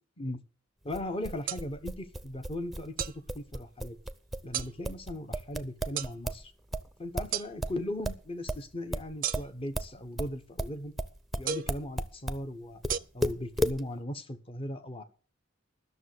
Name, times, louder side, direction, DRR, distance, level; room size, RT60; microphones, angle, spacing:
voice 1, 0.8-4.0 4.4-6.5 7.0-10.9 11.3-15.0, left 1 dB, 30° left, 9 dB, 1.1 m, -38 dB
sound 1, 0.9-6.5 6.7-12.5 12.8-13.8, right 1 dB, ahead, 0.7 m, -34 dB
sound 2, 1.5-1.6 3.0-3.2 4.5-4.7 6.0-6.1 7.3-7.5 9.2-9.7 11.5-11.8 12.9-13.0, right 10 dB, 45° right, 0.5 m, -33 dB
12.0 x 6.7 x 8.1 m, 0.39 s
head